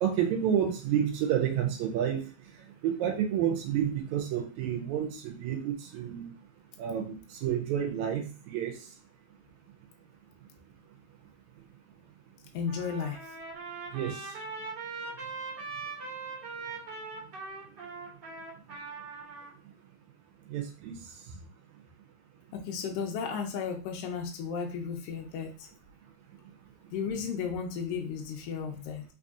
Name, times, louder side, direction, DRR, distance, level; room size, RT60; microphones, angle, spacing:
voice 1, 0.0-2.3 2.8-6.3 6.8-7.1 7.4-8.7 13.9-14.1 20.5-21.0, right 9 dB, 80° right, 2 dB, 1.9 m, -29 dB
voice 2, 12.5-13.2 22.5-25.7 26.9-29.0, left 6 dB, 80° left, 2 dB, 1.3 m, -34 dB
Trumpet, 12.7-19.5, right 4 dB, 45° right, 1.5 m, -41 dB
4.6 x 2.6 x 2.4 m, 0.36 s
omnidirectional pair, 3.4 m